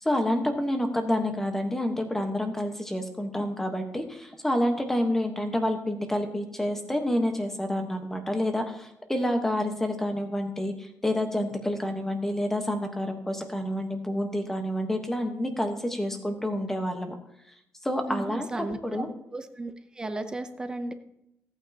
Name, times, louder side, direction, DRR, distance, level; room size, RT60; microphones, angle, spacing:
voice 1, 0.0-17.1 17.8-19.1, left 1 dB, 5° left, 5 dB, 1.2 m, -28 dB
voice 2, 18.1-19.0 19.3-20.9, right 2 dB, 15° right, 9 dB, 0.6 m, -35 dB
16.5 x 9.0 x 2.9 m, 0.78 s
cardioid pair, 180°, 5 cm